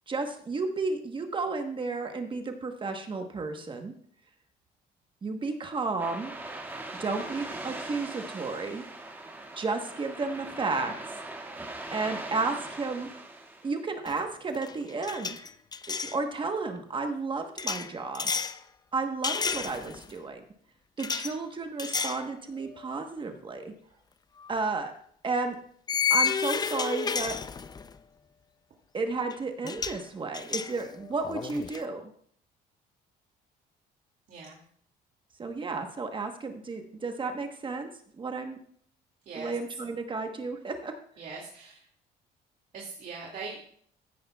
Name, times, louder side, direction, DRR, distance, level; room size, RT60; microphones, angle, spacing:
voice 1, 0.1-3.9 5.2-6.3 7.0-8.8 9.6-11.1 11.9-13.1 13.6-15.4 15.9-18.3 18.9-20.4 21.0-23.7 24.5-24.9 25.2-25.6 26.1-27.4 28.9-32.1 35.4-37.9 38.2-38.6 39.3-41.0, right 3 dB, 30° right, 5 dB, 1.1 m, -32 dB
sound 1, 6.0-13.8, right 2 dB, 10° right, 2.0 m, -40 dB
sound 2, 14.1-14.3 14.5-16.2 17.6-18.6 19.2-20.1 21.0-21.3 21.8-22.3 22.7-22.9 24.4-24.5 25.9-28.0 29.3-29.4 29.6-30.0 30.3-31.8, left 6 dB, 25° left, 0.5 m, -31 dB
voice 2, 34.3-34.6 39.3-39.5 41.2-41.8 42.7-43.6, right 4 dB, 55° right, -2 dB, 2.3 m, -41 dB
15.0 x 10.0 x 2.3 m, 0.62 s
cardioid pair, 110°, 17 cm